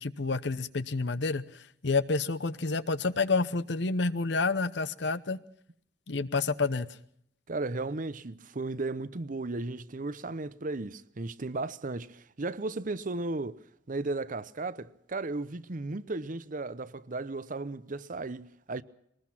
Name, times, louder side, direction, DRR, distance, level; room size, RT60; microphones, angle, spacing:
voice 1, 0.0-1.4 1.8-5.4 6.1-6.9, left 3 dB, 70° left, 0.9 m, -29 dB
voice 2, 7.5-13.6 13.9-18.8, right 2 dB, 45° right, 0.8 m, -35 dB
22.0 x 20.0 x 6.0 m
head